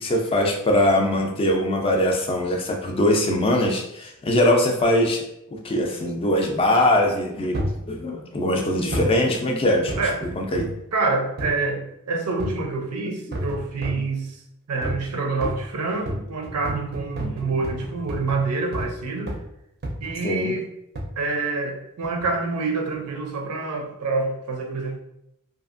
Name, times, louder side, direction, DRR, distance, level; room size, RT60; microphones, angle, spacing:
voice 1, 0.0-5.2 5.5-9.9 10.2-10.7 17.2-17.5 20.2-20.5, left 1 dB, 25° left, 2 dB, 0.4 m, -22 dB
sound 1, 7.5-7.9 8.9-9.2 9.9-10.8 11.4-11.6 12.4-12.7 13.3-14.1 14.8-15.1 15.4-19.0 19.3-19.5 19.8-20.2 20.9-21.2 22.0-22.3 22.9-23.0, equal, 45° right, 0.4 m, -31 dB
voice 2, 10.9-14.4 14.7-19.3 20.0-20.7 21.2-25.0, right 3 dB, 90° right, 2 dB, 0.6 m, -27 dB
2.8 x 2.4 x 2.5 m, 0.81 s
head